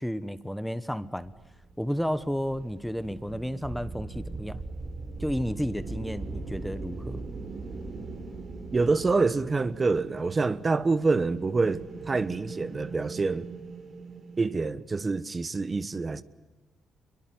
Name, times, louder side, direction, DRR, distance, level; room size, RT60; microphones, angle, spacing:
voice 1, 0.0-1.3 1.8-4.6 5.2-7.2, equal, ahead, 1.1 m, -32 dB
sound 1, 1.2-14.5, right 3 dB, 50° right, 4.8 m, -40 dB
voice 2, 8.7-13.5 14.4-16.2, right 3 dB, 30° right, 1.2 m, -26 dB
25.5 x 23.0 x 9.5 m
cardioid pair, 90°, 0 cm